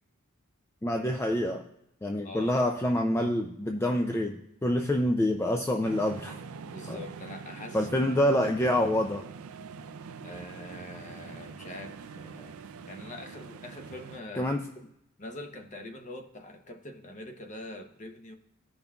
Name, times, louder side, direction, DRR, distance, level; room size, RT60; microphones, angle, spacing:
voice 1, 0.8-1.6 2.0-6.4 6.9-7.0 7.7-9.2 14.4-14.6, left 1 dB, 10° left, 3 dB, 0.3 m, -27 dB
voice 2, 2.2-2.6 6.7-7.9 10.2-12.6 12.9-14.9 15.2-18.4, left 1 dB, 35° left, 6 dB, 0.7 m, -44 dB
sound 1, 5.8-14.2, right 5 dB, 90° right, 0.4 m, -44 dB
15.0 x 5.3 x 2.3 m, 0.79 s
head